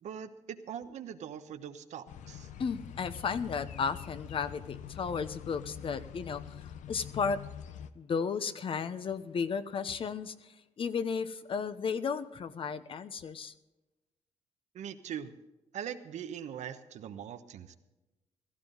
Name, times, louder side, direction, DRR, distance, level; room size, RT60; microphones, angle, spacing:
voice 1, 0.0-2.5 14.7-15.3 15.7-17.8, right 9 dB, 75° right, 9 dB, 1.1 m, -41 dB
sound 1, 2.1-7.9, left 9 dB, 85° left, 0.9 m, -45 dB
voice 2, 2.6-6.4 6.9-7.4 7.9-10.3 10.8-13.5, left 6 dB, 45° left, 12 dB, 0.9 m, -34 dB
16.5 x 14.5 x 4.0 m, 1.0 s
cardioid pair, 115°, 12 cm